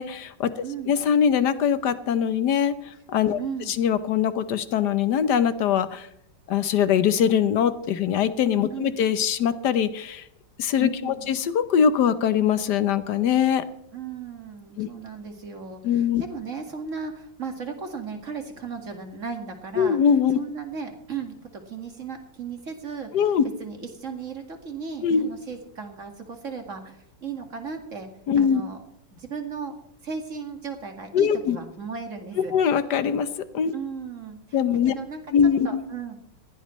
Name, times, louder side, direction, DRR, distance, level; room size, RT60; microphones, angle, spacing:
voice 1, 0.0-0.5 0.8-3.4 3.7-6.1 6.5-10.2 10.6-13.6 14.8-14.9 15.8-16.2 19.8-20.4 23.1-23.4 25.0-25.3 28.3-28.6 31.1-31.6 32.4-33.3 33.5-33.7 34.5-34.9 35.3-35.8, left 8 dB, 65° left, 12 dB, 1.5 m, -22 dB
voice 2, 0.6-1.0 3.4-3.8 8.7-9.0 10.9-11.3 13.9-20.0 20.3-23.3 23.6-28.1 28.4-28.8 29.1-29.7 30.0-32.5 33.7-34.4 34.8-35.2 35.6-36.2, right 5 dB, 45° right, 4 dB, 2.2 m, -36 dB
20.0 x 16.0 x 3.2 m, 0.77 s
omnidirectional pair, 2.0 m